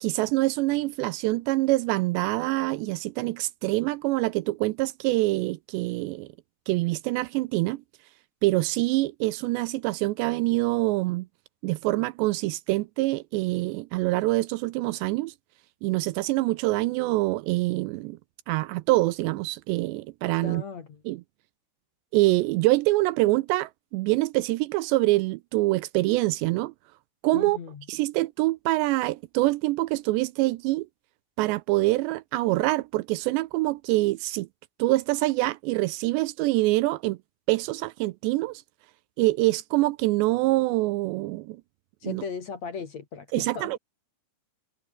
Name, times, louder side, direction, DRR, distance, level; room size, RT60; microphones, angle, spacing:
voice 1, 0.0-6.3 6.7-7.8 8.4-11.3 11.6-15.3 15.8-18.2 18.5-20.6 21.1-21.2 22.1-26.7 27.2-27.6 27.9-30.9 31.4-34.5 34.8-37.2 37.5-38.6 39.2-41.6 42.0-42.2 43.3-43.8, right 20 dB, 80° right, 2.7 m, -25 dB
voice 2, 20.4-21.0 27.3-27.8 42.0-43.8, left 6 dB, 45° left, 2.9 m, -37 dB
omnidirectional pair, 5.2 m